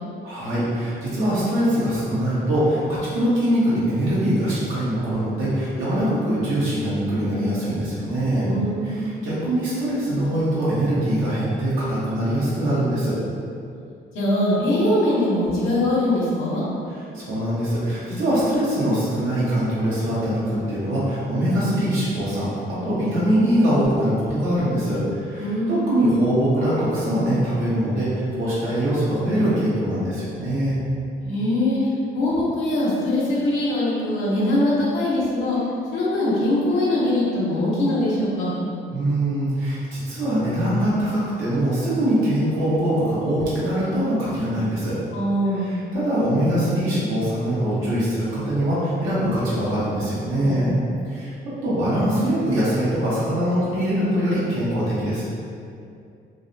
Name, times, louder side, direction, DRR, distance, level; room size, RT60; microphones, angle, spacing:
voice 1, 0.2-8.5 8.8-13.1 16.9-30.8 38.9-45.0 45.5-50.7 51.1-51.3 51.6-55.2, right 1 dB, 90° right, -10 dB, 1.0 m, -23 dB
voice 2, 8.4-9.3 14.1-16.6 25.4-25.9 31.2-31.8 32.1-35.6 35.9-38.5 45.1-45.9 50.4-50.8, left 1 dB, 85° left, -7 dB, 0.6 m, -22 dB
2.6 x 2.1 x 2.5 m, 2.5 s
cardioid pair, 90°, 20 cm